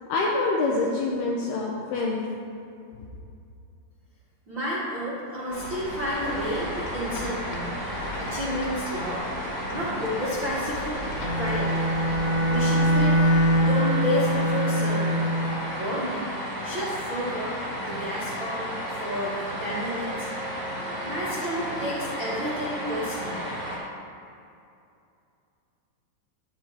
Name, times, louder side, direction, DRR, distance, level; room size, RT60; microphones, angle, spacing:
voice 1, 0.1-2.2, left 3 dB, 85° left, -2 dB, 2.3 m, -25 dB
voice 2, 4.5-7.7 8.2-9.2 9.7-11.9 12.5-13.2 13.6-15.3 15.8-16.3 16.6-20.3 20.8-23.4, equal, 80° right, -9 dB, 1.0 m, -31 dB
sound 1, 5.5-13.7, left 2 dB, 65° left, 2.8 m, -39 dB
sound 2, 5.5-23.8, equal, 55° right, 0.8 m, -33 dB
Bowed string instrument, 11.1-15.6, right 1 dB, 35° left, 1.9 m, -23 dB
12.0 x 10.5 x 3.2 m, 2.5 s
omnidirectional pair, 5.6 m